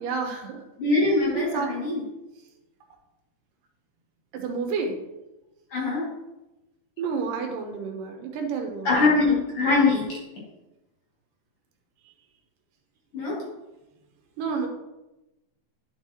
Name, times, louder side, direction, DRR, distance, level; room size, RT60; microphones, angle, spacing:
voice 1, 0.0-0.6 1.3-1.7 4.3-5.0 7.0-9.0 14.4-14.7, right 5 dB, 85° right, 3 dB, 2.7 m, -30 dB
voice 2, 0.8-2.0 5.7-6.1 8.8-10.0 13.1-13.4, left 3 dB, 45° left, -5 dB, 2.9 m, -22 dB
10.0 x 6.6 x 2.9 m, 1.0 s
omnidirectional pair, 3.8 m